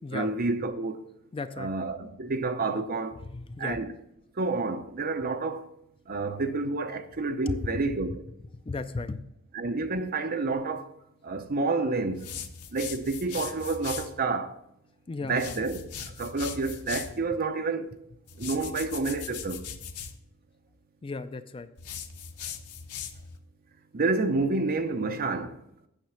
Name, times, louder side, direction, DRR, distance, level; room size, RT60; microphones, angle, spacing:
voice 1, 0.1-1.0 1.6-3.2 3.6-3.9 4.4-5.6 6.1-8.2 9.5-10.9 11.2-12.3 12.7-14.6 15.2-15.8 16.2-17.9 18.4-19.6 23.9-25.6, right 3 dB, 40° right, 0.7 m, -29 dB
voice 2, 1.3-1.7 3.3-3.8 7.5-7.8 8.7-9.2 15.1-15.4 21.0-21.7, left 3 dB, 25° left, 0.4 m, -35 dB
sound 1, 12.2-14.1 15.3-17.2 18.3-20.2 21.8-23.4, left 7 dB, 90° left, 0.8 m, -39 dB
9.2 x 5.8 x 5.6 m
head